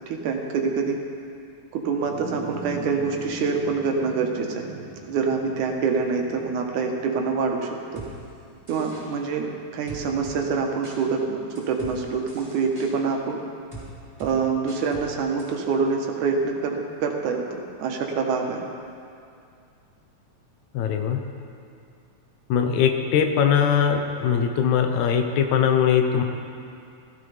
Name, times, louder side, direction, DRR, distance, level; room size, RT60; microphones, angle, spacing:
voice 1, 0.1-1.0 1.7-4.7 5.0-8.0 8.7-13.4 14.2-18.6, right 5 dB, 90° right, 2 dB, 2.6 m, -26 dB
sound 1, 2.0-11.6, right 3 dB, 45° right, 1.8 m, -42 dB
sound 2, 8.0-8.1 8.7-9.0 9.9-10.4 10.8-11.0 11.6-11.9 12.3-12.9 13.7-13.9 14.2-14.3 14.7-15.1 15.4-15.5, right 2 dB, 10° right, 3.7 m, -41 dB
voice 2, 20.7-21.2 22.5-26.2, left 7 dB, 75° left, 5 dB, 2.2 m, -21 dB
16.5 x 14.5 x 3.4 m, 2.4 s
omnidirectional pair, 3.4 m